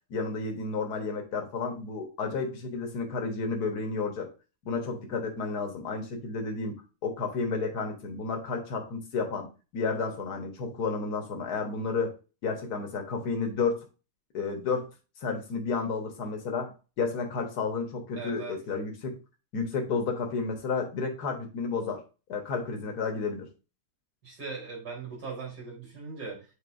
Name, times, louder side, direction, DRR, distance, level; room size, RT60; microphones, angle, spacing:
voice 1, 0.1-4.3 4.6-6.8 7.0-12.1 12.4-13.8 14.3-14.9 15.2-19.2 19.5-22.0 22.3-23.5, left 4 dB, 75° left, 3 dB, 1.8 m, -31 dB
voice 2, 18.2-18.6 24.2-26.5, right 4 dB, 80° right, -5 dB, 4.3 m, -39 dB
8.8 x 4.1 x 2.6 m, 0.32 s
omnidirectional pair, 1.7 m